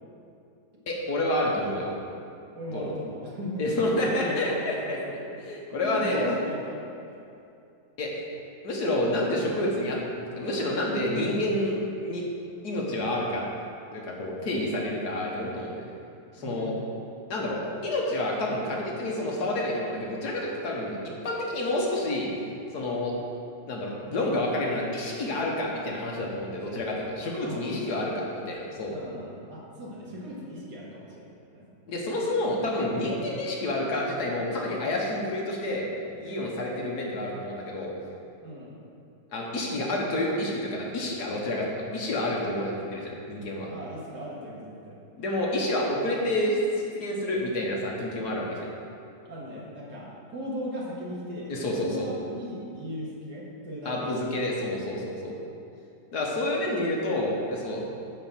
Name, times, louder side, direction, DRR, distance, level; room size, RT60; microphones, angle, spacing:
voice 1, 0.9-1.9 2.7-2.9 3.6-5.0 5.4-6.3 8.0-8.1 8.6-12.2 12.6-13.4 13.9-15.8 16.3-16.7 17.3-22.3 22.7-23.1 23.7-28.9 31.9-35.9 36.1-37.9 39.3-43.7 45.2-48.7 51.5-52.1 53.9-55.3 56.1-57.8, left 1 dB, 70° left, -2 dB, 1.9 m, -29 dB
voice 2, 2.5-3.6 4.0-5.2 5.8-7.2 16.4-16.9 27.4-28.2 28.9-31.3 31.5-31.7 38.4-38.8 43.7-45.0 49.3-54.2, equal, 75° right, -4 dB, 2.3 m, -38 dB
9.8 x 4.3 x 7.4 m, 2.6 s
omnidirectional pair, 1.8 m